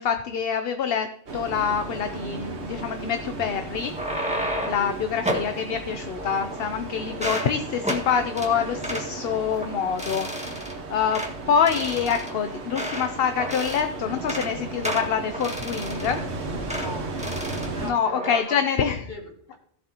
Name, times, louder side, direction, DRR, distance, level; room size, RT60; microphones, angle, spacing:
voice 1, 0.0-3.9 4.6-11.2 11.5-16.2 17.8-19.1, left 7 dB, 55° left, 8 dB, 0.8 m, -26 dB
sound 1, 1.3-17.9, right 3 dB, 60° right, 1.6 m, -35 dB
sound 2, 3.8-4.9 5.2-5.5 6.2-6.8 7.1-7.5 7.8-8.0 8.4-8.5 8.8-9.1 9.5-9.7 10.0-10.7 11.1-11.3 11.7-13.1 13.4-13.9 14.2-14.5 14.8-16.2 16.7-16.9 17.2-17.7 18.0-18.4, equal, 5° right, 1.7 m, -31 dB
voice 2, 16.6-17.1 17.7-19.6, left 1 dB, 40° left, 1 dB, 2.1 m, -39 dB
16.5 x 7.6 x 2.9 m, 0.68 s
omnidirectional pair, 1.3 m